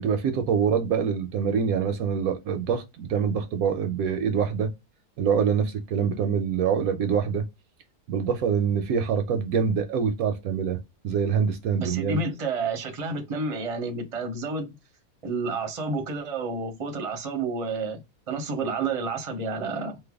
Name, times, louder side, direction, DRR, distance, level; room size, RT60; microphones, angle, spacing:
voice 1, 0.0-4.7 5.2-7.4 8.1-10.8 11.0-12.2, right 7 dB, 75° right, 1.0 m, -25 dB
voice 2, 11.8-14.8 15.2-20.0, right 3 dB, 35° right, 0.6 m, -30 dB
3.2 x 2.1 x 3.4 m
omnidirectional pair, 1.7 m